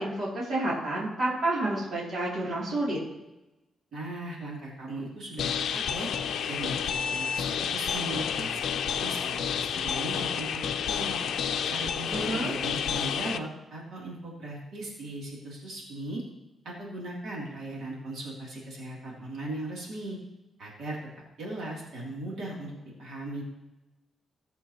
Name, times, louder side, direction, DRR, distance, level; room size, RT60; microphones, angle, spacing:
voice 1, 0.0-3.0 12.1-12.6, right 2 dB, 50° right, -5 dB, 2.7 m, -29 dB
voice 2, 3.9-6.1 6.5-8.6 9.0-11.2 11.7-16.2 16.6-20.2 20.6-21.0 21.4-23.4, right 1 dB, 65° right, -4 dB, 2.7 m, -38 dB
sound 1, 5.4-13.4, left 8 dB, 75° left, 0.5 m, -30 dB
17.5 x 7.2 x 2.9 m, 1.0 s
wide cardioid pair, 155°, 0 cm